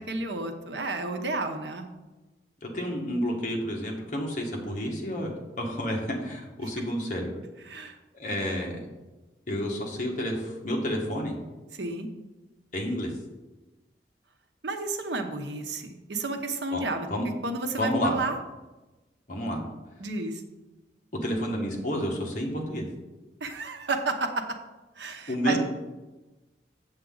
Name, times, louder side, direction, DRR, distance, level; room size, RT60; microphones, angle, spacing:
voice 1, 0.0-1.9 6.6-6.7 7.7-8.0 11.7-12.1 14.6-17.1 17.4-18.4 20.0-20.4 23.4-24.6 25.0-25.6, right 3 dB, 75° right, 6 dB, 0.9 m, -31 dB
voice 2, 2.6-5.3 5.6-7.4 7.7-7.9 8.2-8.8 9.5-11.4 12.7-13.1 16.7-16.8 17.1-17.3 17.8-18.2 19.3-19.6 21.1-22.8 25.3-25.6, equal, 45° left, 0 dB, 1.6 m, -30 dB
7.9 x 7.4 x 3.9 m, 1.1 s
head